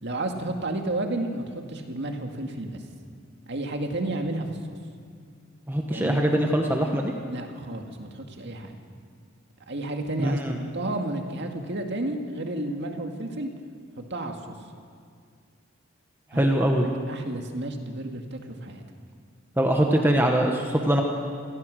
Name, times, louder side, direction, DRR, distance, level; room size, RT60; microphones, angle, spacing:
voice 1, 0.0-2.8 3.5-4.8 5.9-6.2 7.3-8.8 9.7-10.4 10.7-13.5 14.0-14.4 16.3-16.7 17.1-18.8, right 2 dB, 60° right, 4 dB, 2.0 m, -31 dB
voice 2, 5.7-7.1 10.2-10.6 16.3-16.8 19.6-21.0, right 1 dB, 10° right, 2 dB, 1.2 m, -22 dB
26.5 x 16.5 x 6.4 m, 2.2 s
head